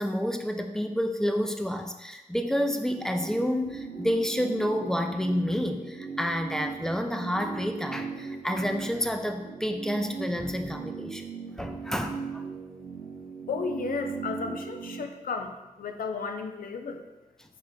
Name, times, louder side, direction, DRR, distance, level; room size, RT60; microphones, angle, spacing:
voice 1, 0.0-11.3 11.6-12.4, equal, 5° left, 5 dB, 0.4 m, -29 dB
sound 1, 2.6-15.0, right 5 dB, 90° right, 0.7 m, -39 dB
voice 2, 13.5-17.0, left 4 dB, 80° left, 5 dB, 0.4 m, -33 dB
4.7 x 2.1 x 3.8 m, 1.0 s
cardioid pair, 40°, 14 cm